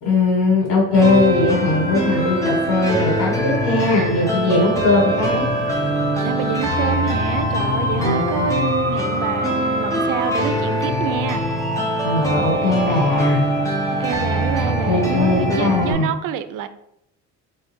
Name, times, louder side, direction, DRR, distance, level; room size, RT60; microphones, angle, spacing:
voice 1, 0.0-5.5 8.0-8.4 12.0-13.5 14.9-16.1, left 2 dB, 70° left, 1.6 m, -19 dB
sound 1, 0.9-15.9, equal, 10° left, 0.8 m, -22 dB
voice 2, 6.2-11.4 14.0-16.7, right 9 dB, 80° right, 0.5 m, -27 dB
3.7 x 2.6 x 4.3 m
cardioid pair, 145°, 31 cm